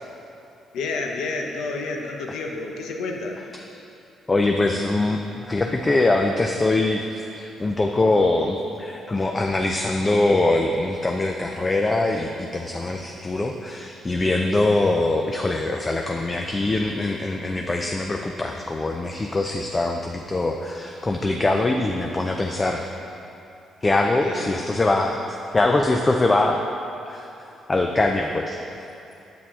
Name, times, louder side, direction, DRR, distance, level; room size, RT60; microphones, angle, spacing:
voice 1, 0.7-3.4 24.2-24.6, left 3 dB, 80° left, 2 dB, 0.7 m, -30 dB
voice 2, 4.3-22.8 23.8-25.2 25.5-26.6 27.1-28.6, left 2 dB, 25° left, 3 dB, 0.4 m, -23 dB
6.7 x 5.7 x 3.7 m, 2.8 s
cardioid pair, 90°, 0 cm